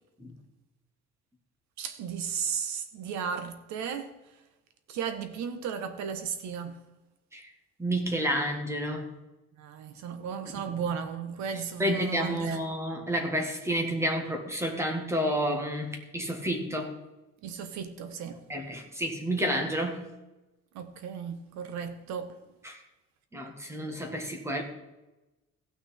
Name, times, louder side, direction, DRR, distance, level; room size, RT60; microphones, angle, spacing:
voice 1, 1.8-4.1 4.9-6.8 9.6-12.7 17.4-18.4 20.7-22.4, right 7 dB, 70° right, 1.4 m, -35 dB
voice 2, 7.8-9.1 10.5-10.8 11.8-16.9 18.5-20.0 22.6-22.8 23.3-24.6, equal, 10° right, 1.7 m, -30 dB
16.0 x 6.2 x 4.3 m
cardioid pair, 150°, 29 cm